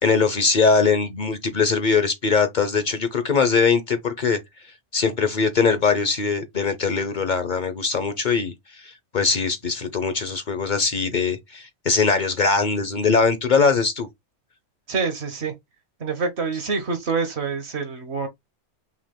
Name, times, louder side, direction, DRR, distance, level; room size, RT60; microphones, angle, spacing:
voice 1, 0.0-4.4 4.9-8.5 8.8-14.1, left 5 dB, 45° left, 0.9 m, -21 dB
voice 2, 14.9-15.5 16.0-18.3, right 4 dB, 65° right, 1.5 m, -26 dB
5.8 x 2.4 x 3.7 m
omnidirectional pair, 1.2 m